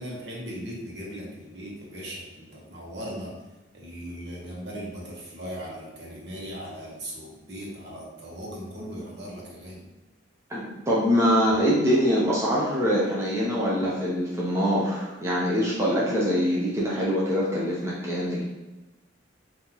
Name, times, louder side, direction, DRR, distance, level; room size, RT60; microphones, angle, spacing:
voice 1, 0.0-3.3 3.7-9.8, equal, 60° right, -4 dB, 1.2 m, -38 dB
voice 2, 10.5-18.4, equal, 15° right, -6 dB, 0.6 m, -24 dB
5.6 x 2.7 x 3.0 m, 1.0 s
head